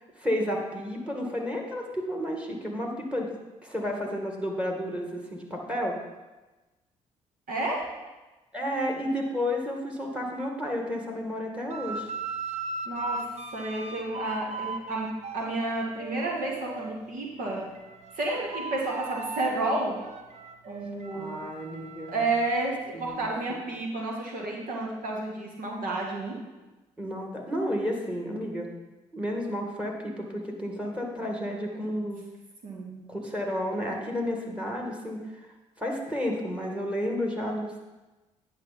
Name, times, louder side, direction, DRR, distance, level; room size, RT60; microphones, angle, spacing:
voice 1, 0.2-3.3 3.6-5.9 8.5-12.1 21.1-22.2 22.9-23.6 27.0-28.7 29.1-32.2 33.1-35.4 35.8-37.8, equal, 5° right, 1 dB, 2.1 m, -31 dB
voice 2, 7.5-7.8 12.9-13.2 13.5-15.1 15.3-17.7 18.2-20.0 20.7-21.4 22.1-22.7 23.0-26.4 32.6-33.0, right 2 dB, 60° right, -2 dB, 1.9 m, -31 dB
sound 1, 11.7-17.0 17.4-22.7, right 3 dB, 45° right, 0.7 m, -38 dB
9.7 x 5.6 x 4.2 m, 1.1 s
hypercardioid pair, 45°, 16 cm